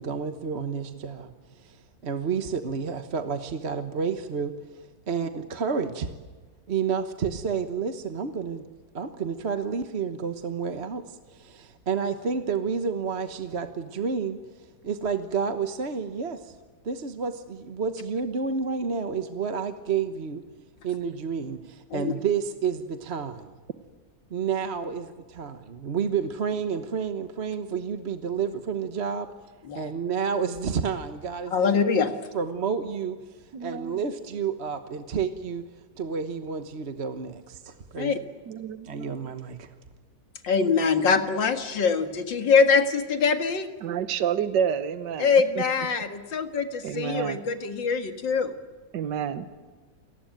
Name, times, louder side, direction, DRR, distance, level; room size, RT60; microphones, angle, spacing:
voice 1, 0.0-4.5 5.1-6.1 6.7-8.7 8.9-14.4 14.8-16.5 16.8-20.4 20.8-23.5 24.3-29.3 29.7-32.0 32.3-35.6 36.0-38.1 38.8-39.7, right 6 dB, 40° right, 9 dB, 1.2 m, -30 dB
voice 2, 31.5-32.1 38.0-38.2 40.4-43.7 45.2-48.5, left 5 dB, 70° left, 8 dB, 2.5 m, -23 dB
voice 3, 33.5-34.0 38.5-39.1 43.8-45.3 46.8-47.4 48.9-49.5, right 8 dB, 70° right, 11 dB, 1.7 m, -29 dB
28.5 x 19.0 x 9.3 m, 1.4 s
omnidirectional pair, 2.1 m